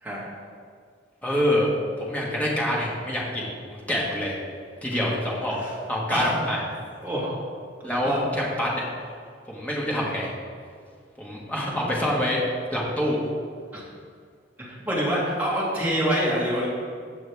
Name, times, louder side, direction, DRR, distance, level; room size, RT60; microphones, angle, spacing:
voice 1, 1.2-1.7 2.0-4.3 4.8-5.6 5.9-6.6 7.8-8.8 9.5-10.3 11.2-12.4 12.7-13.3, left 1 dB, 10° left, -5 dB, 1.9 m, -26 dB
voice 2, 7.0-7.4 8.0-8.2 13.7-13.8 14.6-16.7, equal, 10° right, -7 dB, 2.7 m, -26 dB
15.5 x 6.0 x 3.6 m, 2.1 s
head